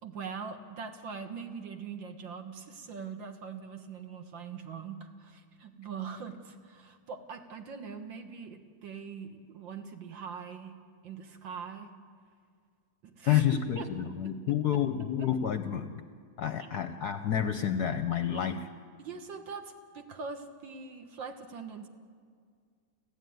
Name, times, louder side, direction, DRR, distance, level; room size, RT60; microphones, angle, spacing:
voice 1, 0.0-12.0 13.0-13.9 14.7-14.8 15.2-15.3 16.6-16.7 19.0-21.9, right 6 dB, 65° right, 6 dB, 2.1 m, -42 dB
voice 2, 13.3-16.1 16.4-18.7, left 10 dB, 65° left, 9 dB, 1.0 m, -29 dB
29.5 x 12.5 x 9.4 m, 2.1 s
omnidirectional pair, 2.3 m